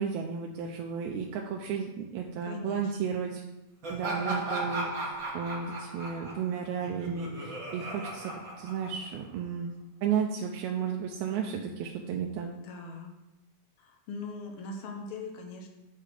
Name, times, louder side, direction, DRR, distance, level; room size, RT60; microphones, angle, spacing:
voice 1, 0.0-3.4 3.9-9.7 10.0-12.5, right 7 dB, 85° right, 1 dB, 1.9 m, -33 dB
voice 2, 2.4-2.9 12.6-13.1 13.8-15.7, left 3 dB, 70° left, 2 dB, 1.3 m, -40 dB
Laughter, 3.8-9.3, right 2 dB, 40° right, 1.3 m, -36 dB
6.6 x 3.3 x 6.1 m, 0.98 s
omnidirectional pair, 3.3 m